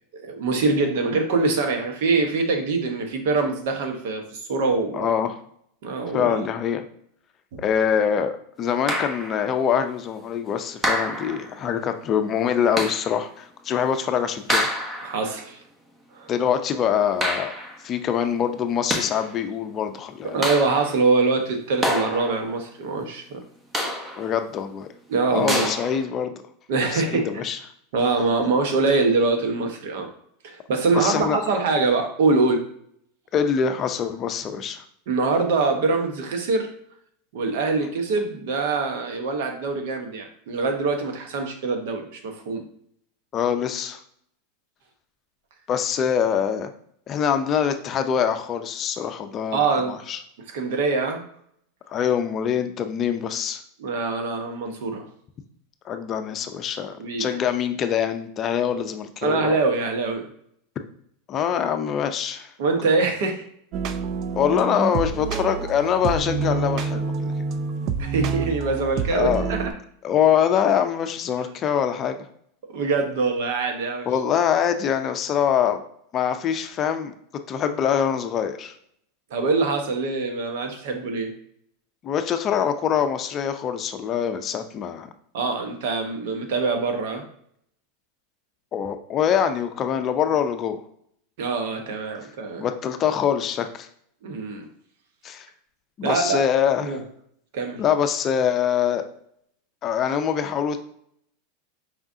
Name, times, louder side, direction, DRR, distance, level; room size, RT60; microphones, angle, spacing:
voice 1, 0.1-5.1 5.8-6.5 15.0-15.6 16.1-16.3 20.3-23.4 25.1-25.7 26.7-27.5 27.9-30.1 30.4-32.6 35.1-36.7 37.3-42.6 49.5-49.9 50.5-51.3 53.8-55.1 57.0-57.4 59.2-60.3 62.6-63.4 68.0-69.7 72.7-74.1 79.3-81.3 85.3-87.2 91.4-92.6 94.2-94.6 96.0-96.4 96.8-97.0 97.5-97.8, right 3 dB, 70° right, 4 dB, 0.9 m, -24 dB
voice 2, 4.9-5.4 6.1-6.8 7.6-14.7 16.3-17.5 17.8-20.4 24.2-24.9 25.3-26.3 26.9-27.6 30.9-31.4 33.3-34.8 43.3-44.0 45.7-46.7 47.1-50.2 51.9-53.6 55.8-59.5 61.3-62.5 64.3-67.3 69.1-69.5 70.0-72.3 74.1-75.8 76.1-77.1 77.5-78.7 82.0-85.1 88.7-90.8 92.6-93.9 95.2-95.5 96.0-97.0 97.8-99.0 99.8-100.8, left 8 dB, 35° left, 7 dB, 0.5 m, -24 dB
sound 1, 8.9-9.4 10.8-11.6 12.8-13.2 14.5-15.2 17.2-17.8 18.7-19.3 20.4-21.0 21.8-22.5 23.7-24.3 25.5-26.0, equal, 20° right, 1.0 m, -27 dB
sound 2, 63.7-69.7, right 5 dB, 50° right, 0.4 m, -27 dB
4.9 x 3.6 x 2.7 m, 0.68 s
supercardioid pair, 120°, 0 cm